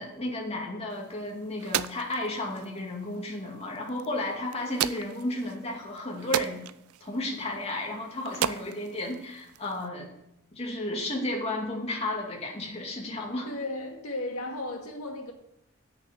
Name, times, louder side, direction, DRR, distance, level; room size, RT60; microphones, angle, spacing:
voice 1, 0.0-6.6 7.0-10.1 10.5-13.5, left 1 dB, 30° left, 2.3 m, -33 dB
sound 1, 0.9-9.9, right 10 dB, 85° right, 0.4 m, -37 dB
voice 2, 13.4-15.3, left 2 dB, 80° left, 2.1 m, -35 dB
8.2 x 6.7 x 8.3 m
head